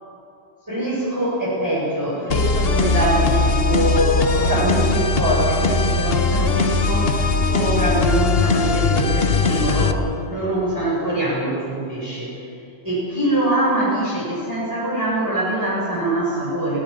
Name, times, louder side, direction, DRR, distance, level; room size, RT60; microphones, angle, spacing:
voice 1, 0.7-10.0 10.3-12.3 12.8-16.8, right 1 dB, 20° right, -8 dB, 7.7 m, -23 dB
sound 1, 2.3-9.9, left 3 dB, 65° left, 1.4 m, -20 dB
25.5 x 18.5 x 7.4 m, 2.7 s
omnidirectional pair, 1.1 m